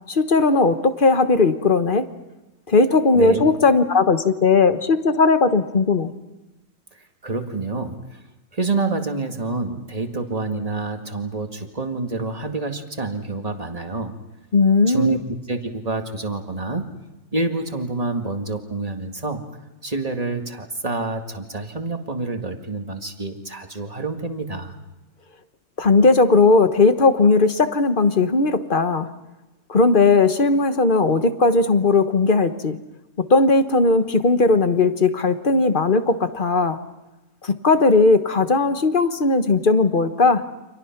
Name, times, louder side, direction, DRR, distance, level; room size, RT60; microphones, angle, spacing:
voice 1, 0.1-2.1 2.7-6.1 14.5-15.2 25.8-29.1 29.7-32.8 33.2-36.8 37.4-40.4, left 3 dB, 35° left, 9 dB, 1.3 m, -17 dB
voice 2, 3.1-3.4 6.9-8.2 8.5-14.2 14.9-16.9 17.3-19.4 19.8-24.8, right 3 dB, 25° right, 5 dB, 2.0 m, -28 dB
30.0 x 26.5 x 6.0 m, 1.0 s
omnidirectional pair, 1.7 m